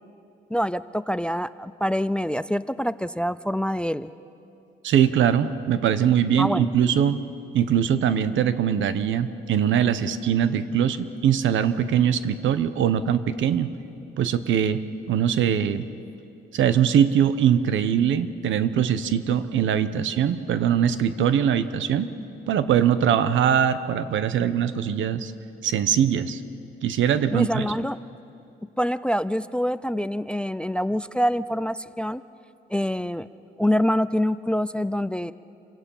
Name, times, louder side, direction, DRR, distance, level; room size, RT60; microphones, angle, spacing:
voice 1, 0.5-4.1 6.4-6.7 27.3-28.0 28.8-32.2 32.7-33.3 33.6-35.3, equal, 5° left, 16 dB, 0.4 m, -25 dB
voice 2, 4.8-7.2 7.5-13.7 14.2-15.9 16.5-22.1 22.5-25.3 25.6-26.4 26.8-27.7, right 9 dB, 75° right, 13 dB, 1.0 m, -22 dB
28.0 x 17.0 x 5.6 m, 2.7 s
cardioid pair, 90°, 20 cm